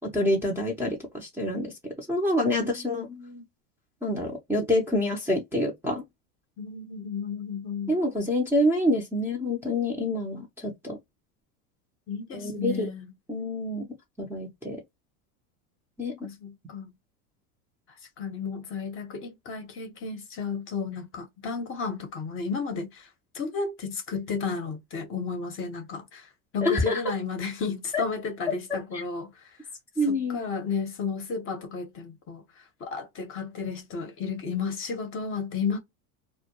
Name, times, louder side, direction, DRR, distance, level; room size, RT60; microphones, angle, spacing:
voice 1, 0.1-3.1 4.0-6.0 7.9-11.0 12.3-12.9 13.3-13.8 14.2-14.8 16.0-16.2 26.6-27.0 27.9-28.0 28.9-29.0 30.0-30.5, left 1 dB, 5° right, 0.5 m, -27 dB
voice 2, 2.5-3.4 6.6-8.0 12.1-13.1 16.2-16.9 18.2-23.1 23.3-29.3 30.1-35.8, left 5 dB, 30° left, 0.7 m, -33 dB
2.2 x 2.2 x 2.8 m
supercardioid pair, 115°, 44 cm